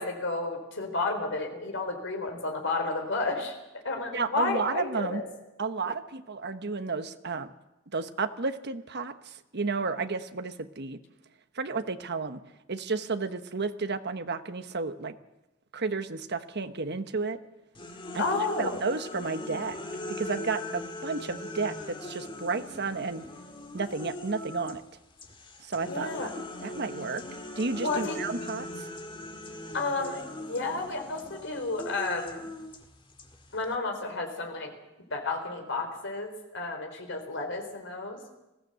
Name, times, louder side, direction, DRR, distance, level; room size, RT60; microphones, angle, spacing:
voice 1, 0.0-5.2 18.2-18.8 25.9-26.3 27.8-28.2 29.7-32.5 33.5-34.7 35.1-38.2, left 3 dB, 65° left, 3 dB, 4.0 m, -32 dB
voice 2, 4.1-5.2 5.6-7.5 7.9-11.0 11.5-12.4 12.7-15.2 15.7-17.4 18.1-18.2 18.6-19.8 20.1-23.2 23.7-24.8 25.6-26.3 26.6-27.2 27.6-28.9, right 4 dB, 55° right, 10 dB, 1.1 m, -32 dB
sound 1, 17.7-24.8 25.2-33.7, left 1 dB, 25° left, 2.0 m, -40 dB
20.5 x 16.0 x 8.0 m, 0.99 s
head